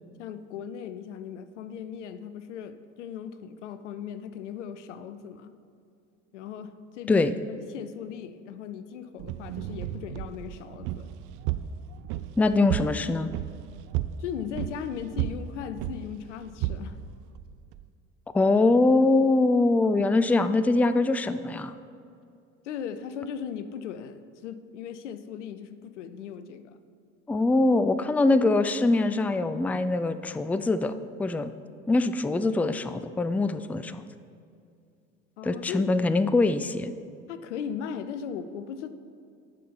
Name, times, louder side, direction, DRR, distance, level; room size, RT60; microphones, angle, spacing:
voice 1, 0.2-5.5 6.3-11.1 14.2-17.0 22.6-26.8 35.4-36.1 37.3-38.9, left 8 dB, 85° left, 12 dB, 0.6 m, -38 dB
sound 1, 9.2-17.9, right 12 dB, 60° right, 0.5 m, -34 dB
voice 2, 12.4-13.3 18.3-21.7 27.3-31.5 31.9-34.0 35.4-36.9, left 2 dB, 5° left, 12 dB, 0.3 m, -23 dB
10.5 x 5.8 x 5.5 m, 2.4 s
hypercardioid pair, 60°, 35 cm